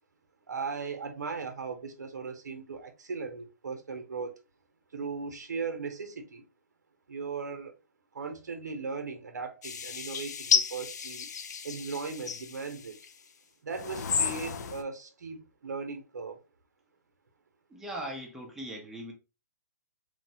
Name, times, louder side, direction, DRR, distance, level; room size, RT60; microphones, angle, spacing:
voice 1, 0.5-4.4 4.9-6.5 7.1-7.8 8.1-11.3 11.6-13.0 13.6-16.4, right 4 dB, 90° right, 0.7 m, -38 dB
sound 1, 9.6-13.1 13.7-14.8, left 6 dB, 75° left, 0.4 m, -32 dB
voice 2, 17.7-19.1, right 1 dB, 5° right, 0.6 m, -39 dB
3.1 x 2.1 x 2.7 m
hypercardioid pair, 145°, 9 cm